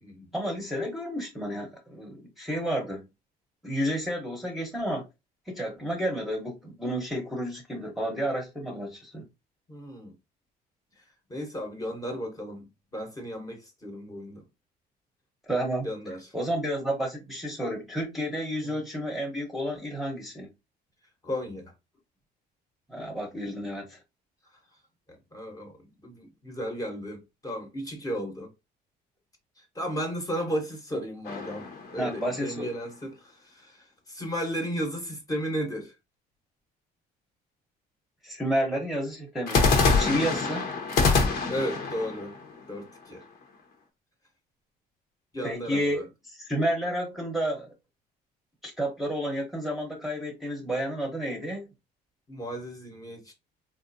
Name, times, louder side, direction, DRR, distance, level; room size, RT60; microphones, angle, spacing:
voice 1, 0.3-3.1 3.6-5.0 5.5-9.2 15.5-15.9 16.3-20.5 22.9-24.0 32.0-32.7 38.2-40.7 45.4-46.0 46.4-47.7 48.6-51.7, equal, ahead, 1.0 m, -31 dB
voice 2, 9.7-10.1 11.0-11.1 11.3-14.4 15.8-16.3 18.6-18.8 21.2-21.7 25.1-28.5 29.6-35.9 41.5-42.3 42.7-43.2 45.3-46.1 52.3-53.3, equal, 20° left, 1.0 m, -34 dB
sound 1, 31.2-32.7 39.5-43.4, left 4 dB, 75° left, 1.0 m, -26 dB
3.6 x 2.5 x 2.6 m
cardioid pair, 110°, 17 cm